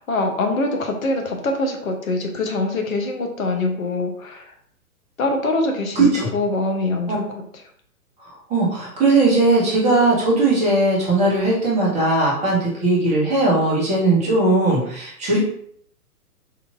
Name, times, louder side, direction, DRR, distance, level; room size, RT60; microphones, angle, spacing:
voice 1, 0.0-4.5 5.2-7.6, left 2 dB, 60° left, 3 dB, 0.9 m, -24 dB
voice 2, 6.0-6.3 7.1-7.2 8.5-15.4, right 2 dB, 15° right, -5 dB, 1.0 m, -18 dB
3.8 x 3.1 x 2.4 m, 0.64 s
figure-of-eight pair, 115°, 47 cm